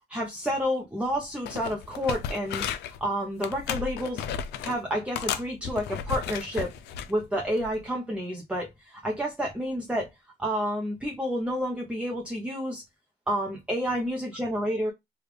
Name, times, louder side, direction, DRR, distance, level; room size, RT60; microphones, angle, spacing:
voice 1, 0.1-2.6 3.0-4.2 4.6-6.7 7.1-10.1 10.4-12.8 13.3-14.9, equal, 5° right, 0.7 m, -29 dB
sound 1, 1.0-1.2 1.4-3.0 3.4-4.8 5.1-7.1 7.6-7.8, left 8 dB, 80° left, 0.5 m, -34 dB
3.3 x 2.4 x 3.3 m
cardioid pair, 110°, 17 cm